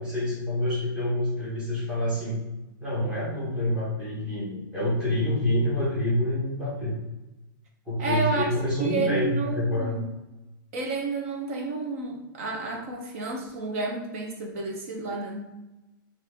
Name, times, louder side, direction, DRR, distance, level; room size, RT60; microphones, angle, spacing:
voice 1, 0.0-2.4 2.8-6.9 7.9-10.0, left 1 dB, 5° right, -9 dB, 1.1 m, -27 dB
voice 2, 8.0-8.5 8.8-10.1 10.7-15.5, right 3 dB, 40° right, 1 dB, 0.7 m, -30 dB
4.2 x 2.6 x 3.4 m, 1.0 s
supercardioid pair, 180°, 12 cm